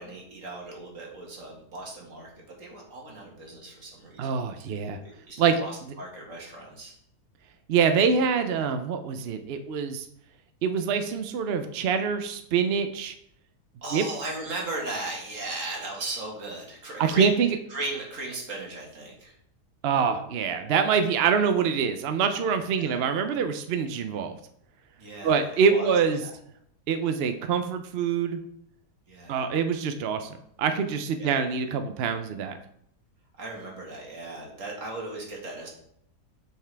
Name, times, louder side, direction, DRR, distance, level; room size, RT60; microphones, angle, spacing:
voice 1, 0.0-4.3 5.0-6.9 13.8-17.3 17.7-19.4 22.8-22.9 25.0-26.3 29.1-29.4 31.2-31.4 33.4-35.7, right 2 dB, 50° right, -1 dB, 2.0 m, -37 dB
voice 2, 4.2-5.0 5.4-5.6 7.7-10.1 10.6-13.1 13.9-14.0 17.0-17.5 19.8-24.4 25.2-26.2 26.9-28.4 29.3-32.5, right 6 dB, 70° right, 8 dB, 0.6 m, -25 dB
7.3 x 5.8 x 3.4 m, 0.71 s
omnidirectional pair, 1.7 m